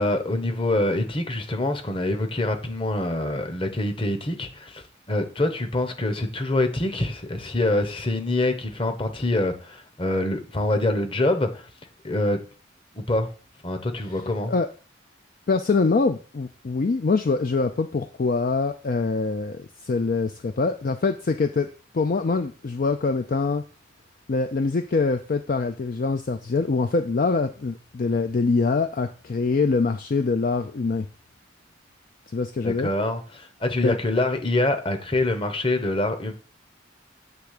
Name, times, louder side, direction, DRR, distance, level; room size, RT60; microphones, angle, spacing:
voice 1, 0.0-11.7 12.0-12.4 12.9-13.3 13.6-14.5 32.6-36.3, left 1 dB, 25° left, 1.0 m, -25 dB
voice 2, 15.5-23.6 24.3-31.1 32.3-32.9 33.8-34.0, left 4 dB, 45° left, 0.4 m, -24 dB
8.3 x 3.4 x 6.6 m
head